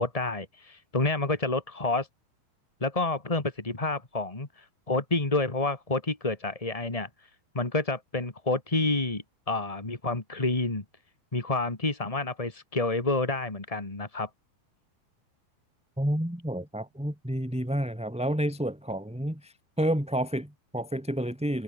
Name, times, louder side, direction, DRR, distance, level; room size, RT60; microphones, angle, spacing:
voice 1, 0.0-2.1 2.8-7.1 7.5-10.8 11.3-14.3, left 2 dB, 20° left, 1.0 m, -29 dB
voice 2, 16.0-21.6, right 1 dB, ahead, 2.9 m, -30 dB
omnidirectional pair, 4.5 m